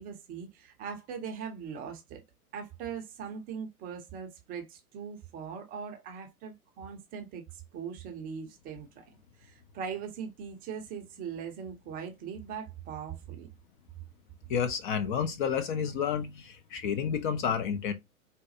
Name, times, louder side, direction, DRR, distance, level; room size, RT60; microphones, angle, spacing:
voice 1, 0.0-2.2 2.5-9.0 9.4-13.5, right 7 dB, 20° right, 0.6 m, -40 dB
voice 2, 14.5-17.9, left 7 dB, 35° left, 0.5 m, -30 dB
4.0 x 2.2 x 2.6 m
hypercardioid pair, 115°, 43 cm